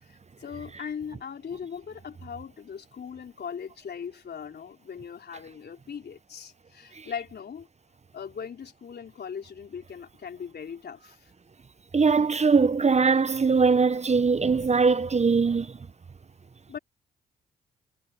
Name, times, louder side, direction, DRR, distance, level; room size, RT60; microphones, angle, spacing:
voice 1, 0.0-7.7 8.1-11.3 16.7-16.8, left 7 dB, 55° left, 3.9 m, -39 dB
voice 2, 11.9-15.8, right 4 dB, 35° right, 1.1 m, -21 dB
hypercardioid pair, 45°, 20 cm